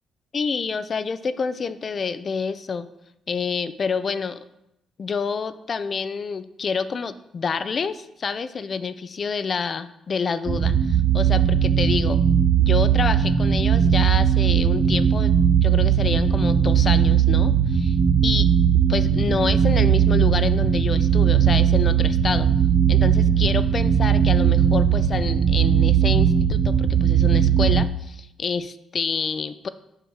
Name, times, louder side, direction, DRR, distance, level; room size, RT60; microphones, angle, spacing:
voice 1, 0.3-2.9 3.3-4.4 5.0-12.2 12.6-15.3 15.6-18.0 18.2-18.5 18.9-22.5 22.9-29.7, left 5 dB, 45° left, 13 dB, 0.5 m, -28 dB
sound 1, 10.5-27.9, right 8 dB, 50° right, 0.4 m, -19 dB
6.5 x 5.0 x 6.3 m, 0.84 s
cardioid pair, 90°, 0 cm